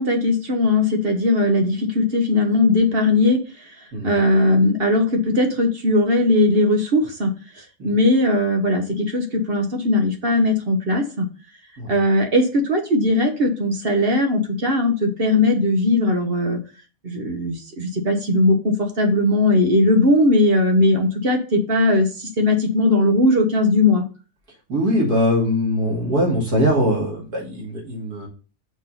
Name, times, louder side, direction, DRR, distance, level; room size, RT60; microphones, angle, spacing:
voice 1, 0.0-3.4 4.0-7.3 7.8-11.3 11.9-16.6 17.0-22.1 22.4-24.0, left 2 dB, 45° right, 3 dB, 1.2 m, -19 dB
voice 2, 24.7-28.3, equal, 85° right, -3 dB, 2.9 m, -21 dB
6.3 x 3.7 x 5.5 m, 0.35 s
omnidirectional pair, 1.6 m